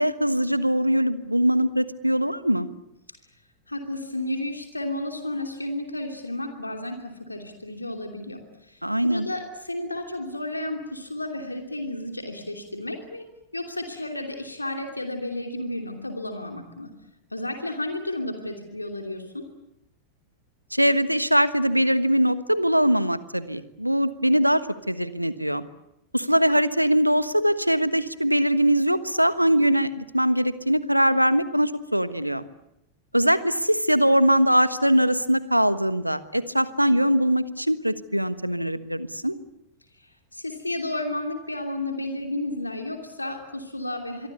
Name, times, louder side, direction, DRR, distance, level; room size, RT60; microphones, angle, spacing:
voice 1, 0.0-2.7 8.8-9.3 20.7-25.6 26.1-32.4 33.1-39.4, equal, 90° right, 14 dB, 1.3 m, -22 dB
voice 2, 3.7-13.3 13.5-16.9 17.3-19.4 39.9-44.3, left 1 dB, 85° left, 4 dB, 2.9 m, -32 dB
25.5 x 23.5 x 8.3 m, 0.84 s
figure-of-eight pair, 90°, 0 cm